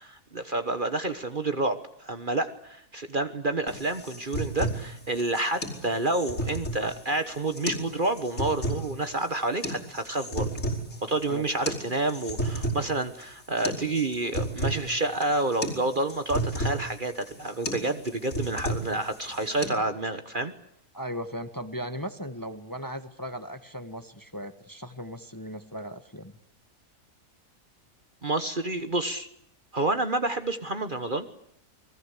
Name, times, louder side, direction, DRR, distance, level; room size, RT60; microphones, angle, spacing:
voice 1, 0.0-10.5 11.0-20.5 28.2-29.3 29.7-31.3, right 2 dB, 35° right, 9 dB, 1.4 m, -29 dB
sound 1, 3.7-19.7, right 1 dB, 55° left, 5.2 m, -33 dB
voice 2, 20.9-26.3, equal, 15° left, 9 dB, 1.5 m, -37 dB
29.5 x 21.0 x 8.4 m, 0.71 s
omnidirectional pair, 1.6 m